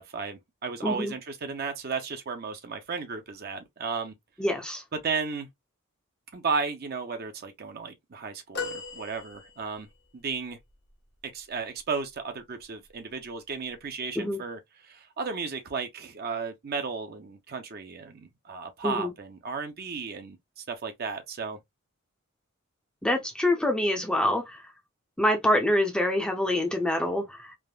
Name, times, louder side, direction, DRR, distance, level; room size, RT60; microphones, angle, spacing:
voice 1, 0.0-4.1 4.9-5.5 6.3-9.9 10.1-10.6 11.2-21.6, right 5 dB, 45° right, 0.5 m, -34 dB
voice 2, 0.8-1.1 4.4-4.8 14.2-14.4 18.8-19.1 23.0-24.6 25.2-27.5, left 1 dB, 5° left, 0.5 m, -26 dB
sound 1, 8.5-10.0 10.7-10.8, left 4 dB, 50° left, 0.7 m, -37 dB
3.3 x 2.0 x 2.2 m
head